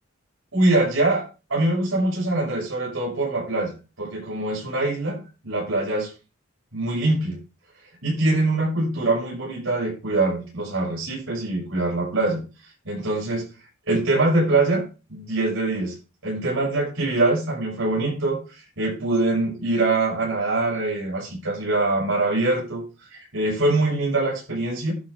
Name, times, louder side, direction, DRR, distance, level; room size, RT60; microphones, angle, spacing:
voice 1, 0.5-1.2 1.5-3.7 4.0-6.1 6.7-7.4 8.0-12.4 12.8-13.5 13.9-15.9 16.2-18.4 18.8-22.8 23.1-24.9, right 2 dB, 75° right, -4 dB, 6.1 m, -23 dB
11.5 x 4.9 x 5.4 m, 0.32 s
head